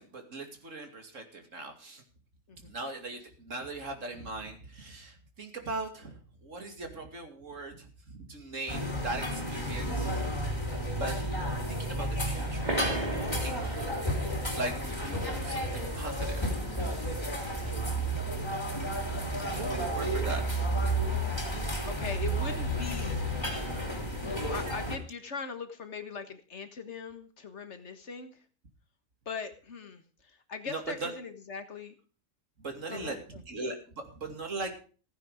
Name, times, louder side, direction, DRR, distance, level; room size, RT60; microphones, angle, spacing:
voice 1, 0.0-2.0 2.6-10.1 11.0-12.8 13.4-14.1 14.6-16.7 19.5-20.4 30.7-31.1 32.6-33.2 33.5-34.8, right 2 dB, 75° right, 4 dB, 2.9 m, -39 dB
sound 1, 8.7-25.0, right 1 dB, 20° left, 3.1 m, -32 dB
sound 2, 12.6-17.9, right 1 dB, 35° right, 3.0 m, -40 dB
sound 3, 14.6-22.6, right 2 dB, 55° right, 3.2 m, -51 dB
voice 2, 21.8-23.2 24.2-28.4 29.3-31.9 32.9-33.2, left 5 dB, 60° left, 8 dB, 1.7 m, -40 dB
15.5 x 9.4 x 5.0 m, 0.39 s
omnidirectional pair, 1.3 m